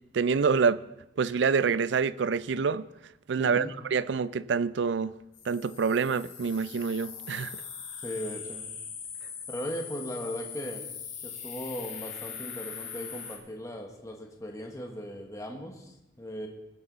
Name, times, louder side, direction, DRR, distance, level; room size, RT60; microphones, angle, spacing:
voice 1, 0.1-0.8 1.2-2.8 3.3-5.1 5.5-7.6, right 5 dB, 70° right, 0.4 m, -26 dB
voice 2, 3.4-3.7 8.0-8.7 9.5-10.9 11.2-16.5, equal, 15° left, 1.3 m, -38 dB
sound 1, 5.3-13.4, left 7 dB, 70° left, 2.9 m, -41 dB
20.0 x 7.9 x 4.0 m
head